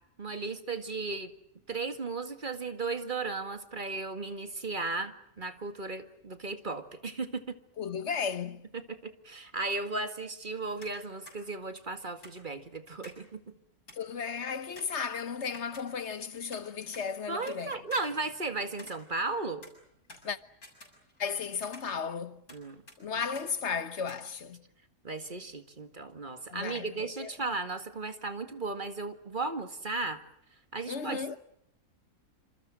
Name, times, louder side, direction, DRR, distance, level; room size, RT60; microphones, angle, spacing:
voice 1, 0.2-1.3 1.7-7.6 8.7-13.5 17.3-19.7 22.5-22.8 25.0-30.2 30.7-31.4, right 3 dB, 30° right, 2.1 m, -35 dB
voice 2, 7.8-8.7 13.9-17.8 20.2-20.4 21.2-22.4 23.0-24.6 26.5-27.3 30.9-31.4, left 6 dB, 50° left, 1.4 m, -35 dB
sound 1, 10.8-11.0 11.3-11.4 12.2-13.3 13.6-13.7 13.9-14.2 14.8-16.2 16.5-17.6 17.9-19.4 19.6-21.3 21.6-22.6 22.9-23.0 23.4-23.5 24.1-24.2, left 2 dB, 75° left, 7.5 m, -52 dB
28.0 x 26.5 x 6.3 m
omnidirectional pair, 1.6 m